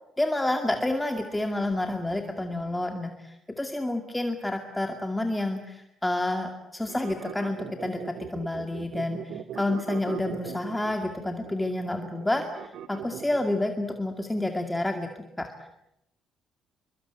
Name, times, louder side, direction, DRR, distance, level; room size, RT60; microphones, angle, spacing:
voice 1, 0.2-15.7, left 1 dB, 5° left, 4 dB, 2.3 m, -29 dB
sound 1, 6.9-13.6, right 9 dB, 75° right, 2.1 m, -39 dB
28.0 x 24.0 x 8.9 m, 0.85 s
cardioid pair, 150°, 0 cm